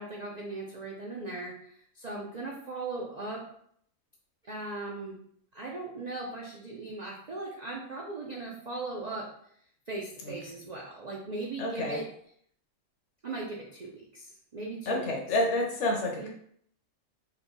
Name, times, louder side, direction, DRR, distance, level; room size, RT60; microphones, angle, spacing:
voice 1, 0.0-3.4 4.4-5.2 5.5-9.3 9.9-12.1 13.2-15.1 16.2-16.3, right 2 dB, 70° right, -3 dB, 0.4 m, -38 dB
voice 2, 11.6-12.0 14.9-16.3, left 1 dB, 55° left, 0 dB, 1.1 m, -29 dB
4.3 x 2.2 x 3.8 m, 0.65 s
omnidirectional pair, 1.6 m